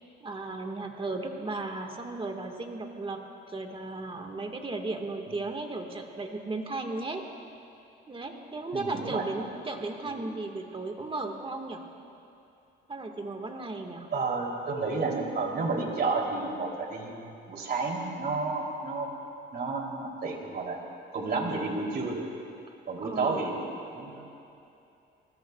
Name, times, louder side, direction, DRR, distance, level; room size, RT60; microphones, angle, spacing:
voice 1, 0.2-3.2 3.5-7.3 8.1-11.9 12.9-14.1 23.0-23.5, right 3 dB, 25° right, 4 dB, 1.7 m, -35 dB
voice 2, 8.7-9.2 10.0-10.2 14.1-19.1 19.5-20.8 21.1-22.2 22.9-24.3, right 3 dB, 55° right, 0 dB, 3.2 m, -31 dB
29.0 x 20.0 x 2.4 m, 2.8 s
cardioid pair, 90°, 20 cm